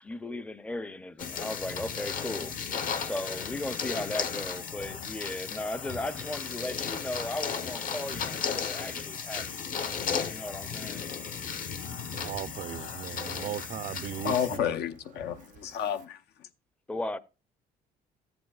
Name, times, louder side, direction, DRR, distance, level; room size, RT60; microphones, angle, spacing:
voice 1, 0.0-2.5 3.0-9.5 10.3-11.0 16.9-17.2, left 1 dB, 5° left, 0.5 m, -36 dB
sound 1, 1.2-14.6, left 6 dB, 55° left, 1.1 m, -35 dB
voice 2, 12.1-14.6, right 11 dB, 50° right, 0.4 m, -37 dB
voice 3, 14.2-16.2, left 8 dB, 75° left, 0.7 m, -30 dB
13.5 x 7.8 x 2.3 m
cardioid pair, 110°, 17 cm